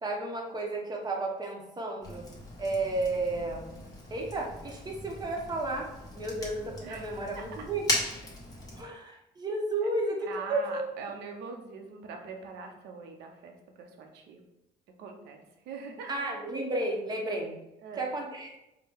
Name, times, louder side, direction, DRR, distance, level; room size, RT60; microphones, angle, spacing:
voice 1, 0.0-2.2 2.6-3.8 4.1-7.9 8.7-10.9 16.1-17.6 18.0-18.5, right 2 dB, 25° right, 0 dB, 0.9 m, -33 dB
Fire, 2.0-8.8, left 2 dB, 20° left, 1.2 m, -38 dB
voice 2, 6.8-7.7 9.8-9.9 10.2-14.4 15.0-16.1 17.8-18.1, right 5 dB, 80° right, 3 dB, 0.7 m, -43 dB
4.5 x 2.2 x 3.5 m, 0.90 s
cardioid pair, 110°, 17 cm